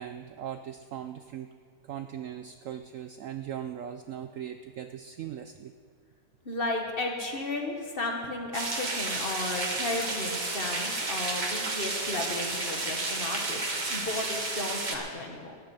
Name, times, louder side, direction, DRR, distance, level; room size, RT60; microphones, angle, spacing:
voice 1, 0.0-1.6 1.8-5.7, right 10 dB, 70° right, 9 dB, 0.8 m, -39 dB
voice 2, 6.4-15.6, left 2 dB, 35° left, 2 dB, 1.5 m, -34 dB
sound 1, 8.5-15.0, right 2 dB, 30° right, 1.3 m, -32 dB
14.0 x 7.1 x 9.4 m, 2.1 s
omnidirectional pair, 1.8 m